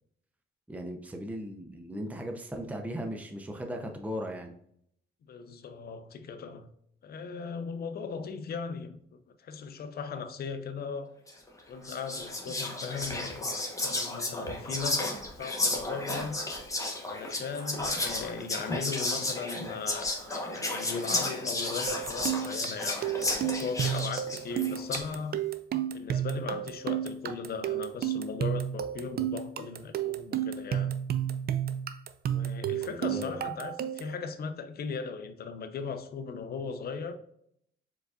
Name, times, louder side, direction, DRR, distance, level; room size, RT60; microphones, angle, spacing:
voice 1, 0.7-4.5 32.8-33.4, equal, 5° right, 0.6 m, -37 dB
voice 2, 5.3-6.7 7.0-11.1 11.7-16.4 17.0-25.4 25.9-30.9 32.3-37.1, left 5 dB, 50° left, 0.6 m, -38 dB
Whispering, 11.3-11.5 11.8-25.1, left 2 dB, 15° left, 1.0 m, -33 dB
sound 1, 21.9-34.2, right 10 dB, 50° right, 0.4 m, -32 dB
4.7 x 3.9 x 2.4 m
cardioid pair, 90°, 20 cm